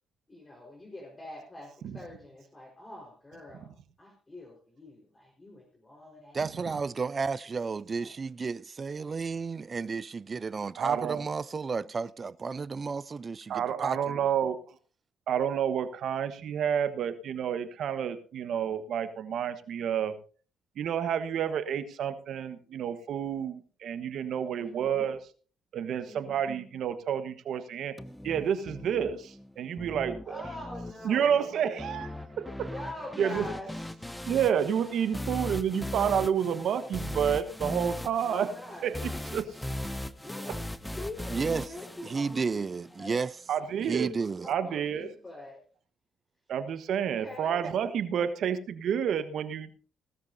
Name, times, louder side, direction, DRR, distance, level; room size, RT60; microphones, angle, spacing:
voice 1, 0.3-3.7 4.0-6.4 8.0-8.1 22.7-22.8 24.6-25.0 25.9-26.4 30.2-31.5 32.6-33.7 38.3-38.9 40.2-40.6 40.9-42.5 43.0-43.2 44.4-45.6 47.2-47.6, left 1 dB, 25° left, 4.5 m, -44 dB
voice 2, 6.3-14.0 41.3-41.7 42.0-43.3 43.8-44.5, right 4 dB, 40° right, 0.5 m, -32 dB
voice 3, 10.8-11.2 13.5-14.6 15.3-20.1 20.8-25.2 25.7-27.9 28.2-30.4 31.0-32.7 33.2-33.5 34.3-38.5 38.8-39.4 43.5-44.1 44.5-45.1 46.5-49.8, right 8 dB, 65° right, 1.3 m, -30 dB
sound 1, 28.0-43.0, left 1 dB, 10° left, 0.9 m, -39 dB
17.5 x 13.0 x 2.7 m
hypercardioid pair, 55°, 0 cm